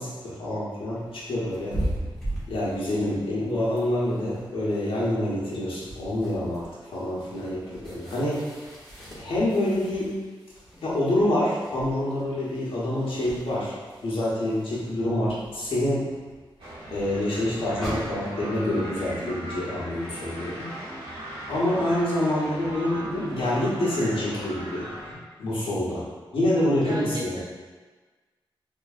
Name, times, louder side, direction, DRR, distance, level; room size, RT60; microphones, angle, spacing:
voice 1, 0.0-1.8 2.5-8.5 9.1-10.2 10.8-13.7 14.0-16.0 16.9-20.7 21.5-25.1 25.4-26.1 26.3-27.4, left 1 dB, 80° left, -7 dB, 1.1 m, -27 dB
sound 1, 0.8-18.5, right 1 dB, 5° left, 1.3 m, -40 dB
sound 2, 16.6-25.1, right 1 dB, 90° right, 1.0 m, -38 dB
voice 2, 26.8-27.4, right 1 dB, 55° right, -5 dB, 1.0 m, -35 dB
3.8 x 3.0 x 2.4 m, 1.4 s
cardioid pair, 70°, 9 cm